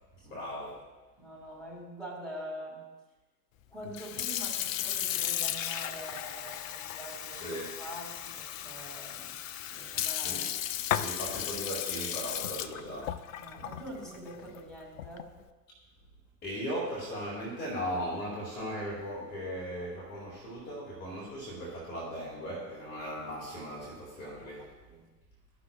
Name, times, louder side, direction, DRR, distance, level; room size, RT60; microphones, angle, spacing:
voice 1, 0.2-0.8 7.3-7.7 10.2-10.5 10.9-13.2 16.4-24.7, equal, 20° left, -5 dB, 1.7 m, -38 dB
voice 2, 1.2-2.9 3.7-9.4 9.7-10.5 13.4-15.3 24.6-25.0, right 1 dB, ahead, -3 dB, 2.5 m, -45 dB
Sink (filling or washing) / Fill (with liquid), 3.8-15.4, left 11 dB, 55° left, 0.5 m, -35 dB
14.0 x 6.0 x 2.3 m, 1.2 s
hypercardioid pair, 105°, 49 cm